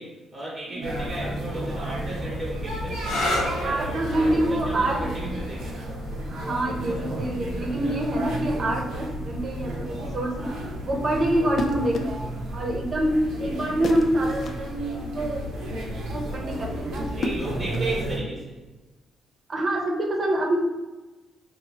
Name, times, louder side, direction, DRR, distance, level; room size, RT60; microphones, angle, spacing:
voice 1, 0.0-5.9 17.1-18.6, right 1 dB, 15° right, -4 dB, 1.0 m, -35 dB
sound 1, 0.8-18.2, right 1 dB, 80° right, 0.8 m, -32 dB
sound 2, 2.9-10.4 11.4-11.9 15.4-15.8, left 1 dB, 85° left, 0.7 m, -35 dB
voice 2, 3.6-5.1 6.3-12.2 12.5-17.1 19.5-20.6, right 1 dB, 45° right, 0 dB, 0.8 m, -26 dB
sound 3, 11.5-12.2 13.8-14.7 16.9-18.0, left 2 dB, 55° left, 0.4 m, -32 dB
3.9 x 2.3 x 3.0 m, 1.2 s
cardioid pair, 90°, 0 cm